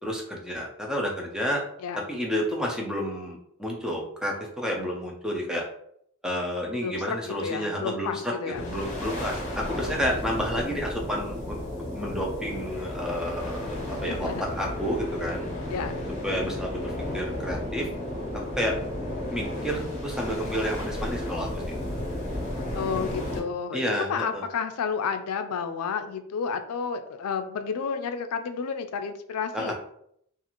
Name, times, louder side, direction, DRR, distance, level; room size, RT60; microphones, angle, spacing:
voice 1, 0.0-1.6 1.9-5.6 6.2-11.6 11.9-13.8 14.0-15.5 16.2-17.9 18.6-18.8 19.3-21.6 23.7-24.5 29.5-29.7, equal, 5° right, -1 dB, 0.4 m, -30 dB
voice 2, 6.8-8.7 14.0-14.5 15.7-16.0 22.7-29.7, left 6 dB, 85° left, 8 dB, 0.4 m, -31 dB
sound 1, 8.5-23.4, left 1 dB, 35° left, 0.7 m, -33 dB
2.4 x 2.4 x 2.9 m, 0.70 s
head